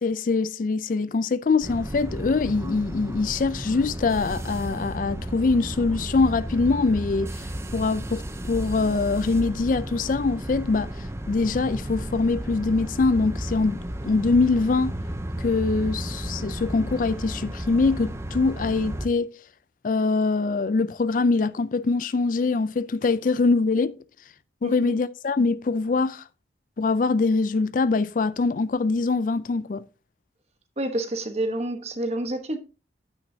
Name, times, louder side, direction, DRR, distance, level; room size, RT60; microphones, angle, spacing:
voice 1, 0.0-14.9 15.4-19.3 19.8-24.0 24.6-26.2 26.8-29.8, left 3 dB, 45° left, 0.4 m, -23 dB
sound 1, 1.6-19.1, right 1 dB, 15° right, 0.7 m, -33 dB
voice 2, 24.6-24.9 30.8-32.6, right 1 dB, 35° right, 1.1 m, -28 dB
9.1 x 9.1 x 2.7 m
head